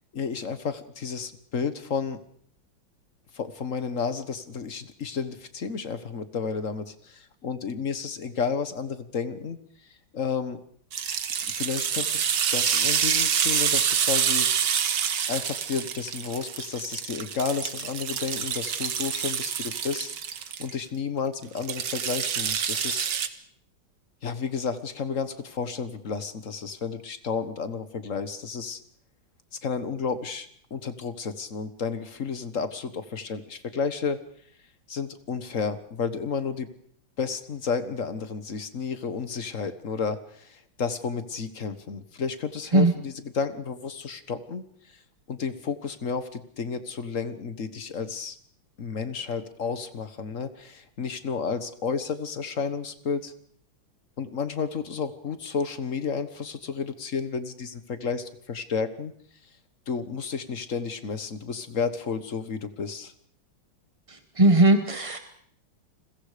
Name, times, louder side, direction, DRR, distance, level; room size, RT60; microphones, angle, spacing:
voice 1, 0.1-2.2 3.3-9.6 10.1-10.6 11.3-14.5 14.8-14.9 15.3-23.1 24.2-28.8 29.5-34.2 34.9-36.7 37.2-45.0 45.3-48.4 48.8-53.3 54.2-59.1 59.9-63.1, left 5 dB, 45° left, 11 dB, 1.6 m, -32 dB
sound 1, 10.9-20.7 21.6-23.3, right 8 dB, 60° right, 1.8 m, -27 dB
voice 2, 64.1-65.2, right 2 dB, 25° right, 7 dB, 0.8 m, -19 dB
30.0 x 21.5 x 5.1 m, 0.62 s
omnidirectional pair, 2.2 m